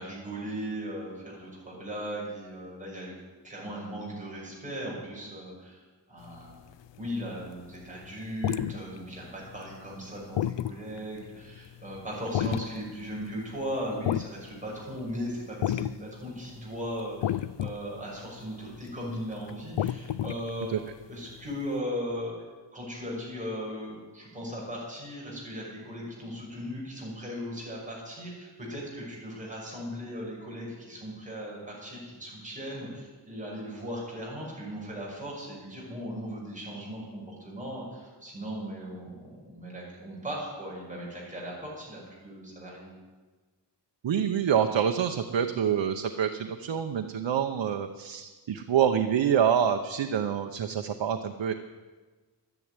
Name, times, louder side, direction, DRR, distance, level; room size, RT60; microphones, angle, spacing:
voice 1, 0.0-3.1 3.4-6.6 7.0-20.7 21.1-22.3 22.7-42.9, equal, 15° right, -4 dB, 6.1 m, -38 dB
sound 1, 6.3-7.3 7.7-15.3 15.6-16.2 16.4-21.7, left 11 dB, 80° left, 0.5 m, -32 dB
voice 2, 44.0-51.5, right 8 dB, 85° right, 5 dB, 0.9 m, -26 dB
12.5 x 11.0 x 9.6 m, 1.3 s
wide cardioid pair, 165°, 43 cm